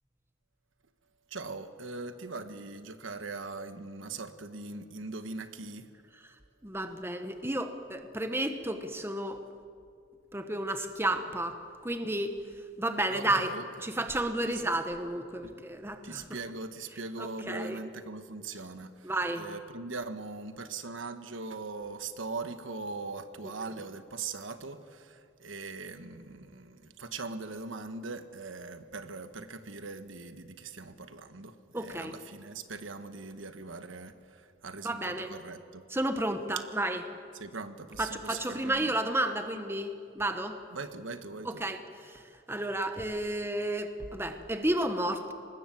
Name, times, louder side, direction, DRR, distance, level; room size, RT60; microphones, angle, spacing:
voice 1, 1.3-5.9 13.1-13.9 14.4-14.6 15.4-15.6 16.0-35.9 37.3-38.9 40.7-41.7, right 3 dB, 80° right, 9 dB, 1.3 m, -41 dB
voice 2, 6.6-9.4 10.3-11.6 11.8-12.4 12.8-13.5 13.8-16.2 17.2-17.9 19.0-19.4 31.7-32.1 34.8-35.3 35.9-37.0 38.0-40.6 41.4-45.3, right 1 dB, 10° right, 7 dB, 1.2 m, -32 dB
25.5 x 20.0 x 7.7 m, 2.3 s
head